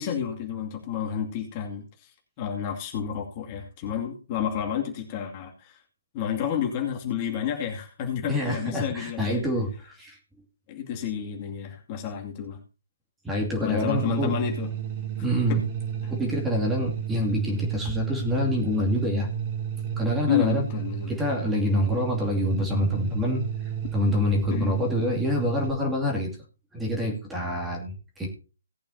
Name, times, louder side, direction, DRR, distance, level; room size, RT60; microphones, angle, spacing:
voice 1, 0.0-2.1 2.4-5.8 6.1-9.4 10.7-12.6 13.6-14.7 15.5-15.7 20.3-21.1 24.5-24.7, left 9 dB, 30° left, 1 dB, 2.4 m, -30 dB
voice 2, 8.3-10.2 13.2-14.3 15.2-15.6 16.1-19.3 20.0-20.7 21.1-23.4 23.9-26.3 26.7-28.3, left 1 dB, 5° right, 0 dB, 2.5 m, -26 dB
sound 1, 13.9-25.7, right 9 dB, 30° right, 2.9 m, -32 dB
18.5 x 8.6 x 2.8 m, 0.34 s
figure-of-eight pair, 140°, 0 cm